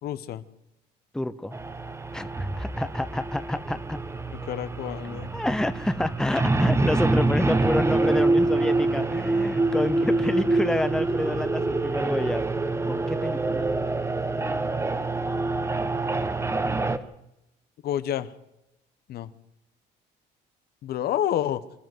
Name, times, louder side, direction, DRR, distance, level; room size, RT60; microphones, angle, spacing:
voice 1, 0.0-0.4 4.5-5.3 17.8-18.3 19.1-19.3 20.8-21.6, left 11 dB, 65° left, 13 dB, 1.2 m, -28 dB
voice 2, 1.1-1.6 2.1-4.0 5.3-12.5 12.9-13.7 16.1-17.1, left 1 dB, 5° left, 12 dB, 0.9 m, -29 dB
sound 1, 1.5-17.0, right 2 dB, 15° right, 1.2 m, -26 dB
26.5 x 12.5 x 7.9 m, 0.90 s
cardioid pair, 110°, 17 cm